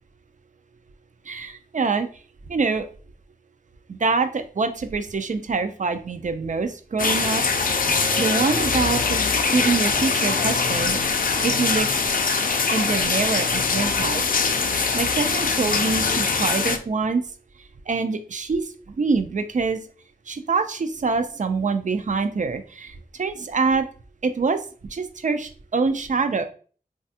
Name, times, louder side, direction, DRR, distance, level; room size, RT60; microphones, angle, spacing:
voice 1, 1.3-2.1 2.5-2.9 3.9-7.5 8.2-11.9 12.7-14.2 14.9-17.2 17.9-19.8 20.3-23.9 24.2-24.6 24.9-26.4, right 4 dB, 55° right, 9 dB, 0.4 m, -25 dB
sound 1, 7.0-16.8, left 4 dB, 65° left, 0.4 m, -22 dB
3.2 x 2.3 x 2.7 m, 0.40 s
wide cardioid pair, 40°, 16 cm